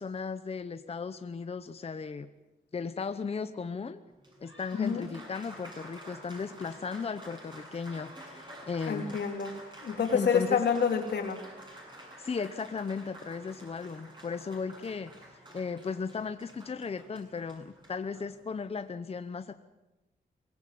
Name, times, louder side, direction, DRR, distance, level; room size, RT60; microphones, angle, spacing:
voice 1, 0.0-2.3 2.7-4.0 4.4-9.2 10.1-10.6 12.2-15.1 15.5-19.5, left 5 dB, 35° left, 10 dB, 0.9 m, -36 dB
Applause, 4.1-18.8, right 1 dB, 25° right, 7.4 m, -50 dB
voice 2, 8.9-9.5 9.8-11.4, left 6 dB, 85° left, 3 dB, 3.4 m, -28 dB
24.0 x 19.0 x 7.8 m, 1.0 s
wide cardioid pair, 130°, 17 cm